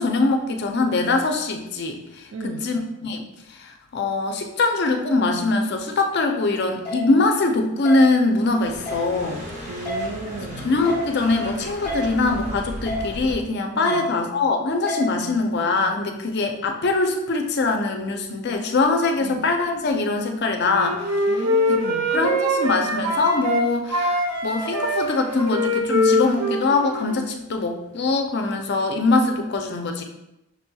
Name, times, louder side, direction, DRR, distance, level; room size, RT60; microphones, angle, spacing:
voice 1, 0.0-9.4 10.6-21.0 22.1-30.0, left 3 dB, 50° left, 4 dB, 0.4 m, -22 dB
voice 2, 2.3-2.7 9.7-10.7 13.7-14.1 19.2-19.5 21.3-22.1, right 3 dB, 60° right, 3 dB, 0.3 m, -34 dB
sound 1, 6.8-7.0 7.8-8.0 8.8-9.0 9.8-10.0 10.8-11.0 11.8-12.0 12.8-13.0 13.8-14.0 14.9-15.0, left 1 dB, 5° left, 1.0 m, -28 dB
sound 2, 8.3-13.5, equal, 30° right, 0.9 m, -36 dB
Wind instrument woodwind instrument, 20.6-23.6 23.9-27.2, equal, 85° right, 0.8 m, -23 dB
6.1 x 2.7 x 2.3 m, 0.89 s
head